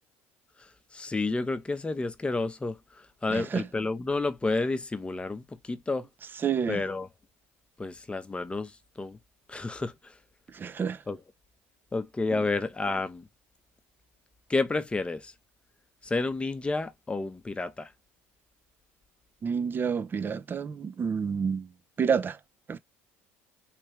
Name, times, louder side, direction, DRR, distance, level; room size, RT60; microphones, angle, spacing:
voice 1, 0.9-2.8 3.2-6.1 6.7-7.1 7.8-8.7 9.0-9.2 9.5-9.9 11.1-11.2 11.9-13.3 14.5-15.3 16.0-17.9, left 3 dB, 15° left, 0.7 m, -30 dB
voice 2, 3.3-3.7 6.3-6.8 10.5-11.0 12.3-12.5 19.4-21.7 22.0-22.4 22.7-22.8, right 6 dB, 30° right, 0.5 m, -29 dB
3.3 x 3.2 x 3.1 m
hypercardioid pair, 80°, 7 cm